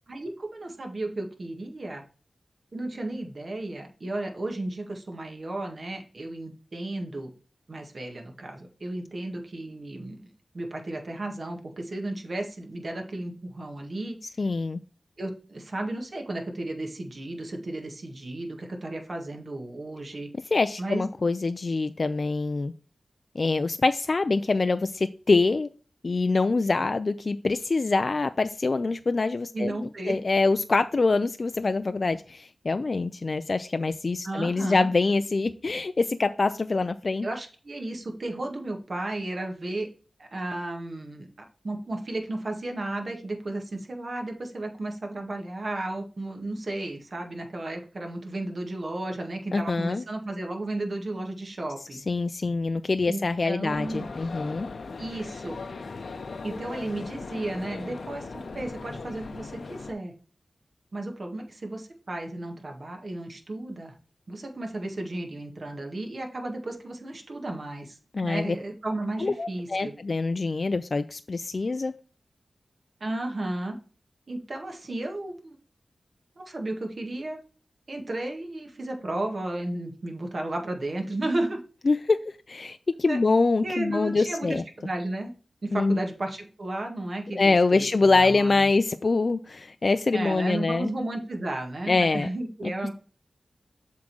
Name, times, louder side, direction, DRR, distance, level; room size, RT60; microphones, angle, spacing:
voice 1, 0.1-2.0 2.7-7.3 7.7-10.2 10.5-14.2 15.2-20.3 20.8-21.1 29.5-30.2 34.2-34.9 37.2-39.9 40.2-41.3 41.6-52.0 53.1-54.1 55.0-55.6 56.4-60.1 60.9-64.0 64.3-68.0 68.2-69.9 73.0-73.8 74.3-75.6 76.4-77.4 77.9-81.6 83.1-83.2 83.6-85.3 85.6-88.7 90.1-93.0, right 2 dB, 55° right, 2 dB, 1.8 m, -33 dB
voice 2, 14.4-14.8 20.5-22.7 23.4-25.7 26.0-37.3 49.5-50.0 52.1-54.7 68.1-68.6 69.2-71.9 81.9-82.2 82.5-84.6 85.7-86.0 87.4-90.9 91.9-92.3, left 3 dB, 50° left, 9 dB, 0.4 m, -25 dB
sound 1, 53.7-59.9, left 4 dB, 75° left, 0.8 m, -38 dB
7.4 x 3.7 x 6.1 m, 0.38 s
wide cardioid pair, 65°, 0 cm